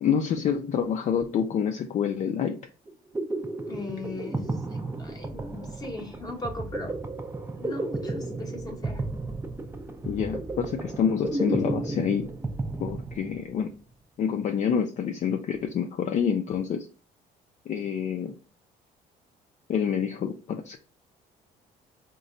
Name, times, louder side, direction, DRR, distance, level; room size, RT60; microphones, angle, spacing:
voice 1, 0.0-2.6 10.0-12.3 12.8-13.7 14.2-16.9 17.7-18.3 19.7-20.8, left 7 dB, 45° left, 4 dB, 0.4 m, -27 dB
sound 1, 2.9-13.7, right 2 dB, 15° right, 0.4 m, -33 dB
voice 2, 3.7-7.0 7.5-9.1, left 2 dB, 20° left, 3 dB, 0.9 m, -39 dB
4.1 x 2.2 x 3.7 m, 0.35 s
cardioid pair, 110°, 17 cm